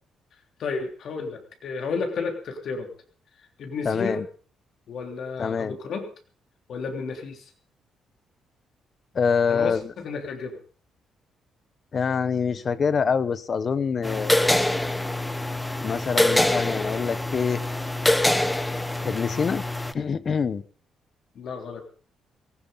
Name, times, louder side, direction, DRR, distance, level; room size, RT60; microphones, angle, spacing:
voice 1, 0.6-2.9 3.6-4.2 4.9-6.1 6.7-7.4 9.5-10.6 21.3-21.8, left 4 dB, 65° left, 4 dB, 3.3 m, -32 dB
voice 2, 3.8-4.2 5.4-5.8 9.1-9.9 11.9-14.6 15.8-17.6 19.0-19.7 19.9-20.6, left 6 dB, 45° left, 16 dB, 0.8 m, -25 dB
sound 1, 14.0-19.9, left 1 dB, 10° left, 0.8 m, -24 dB
18.5 x 15.5 x 4.0 m, 0.42 s
cardioid pair, 90°, 0 cm